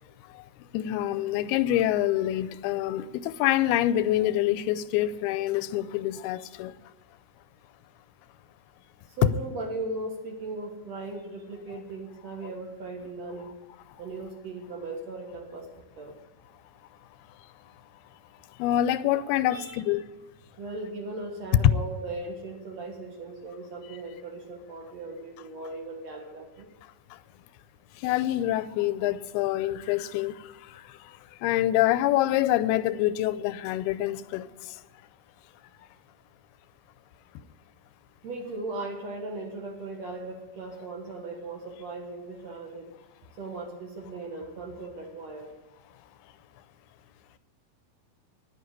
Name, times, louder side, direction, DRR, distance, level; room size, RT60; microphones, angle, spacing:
voice 1, 0.3-6.8 18.6-20.1 27.1-27.2 28.0-34.8, left 13 dB, 90° left, 2.6 m, -26 dB
voice 2, 9.1-13.6 14.0-16.2 19.5-19.8 20.6-26.7 38.2-42.9 43.4-45.5, right 2 dB, 55° right, 2.2 m, -38 dB
10.5 x 9.5 x 9.6 m
omnidirectional pair, 4.4 m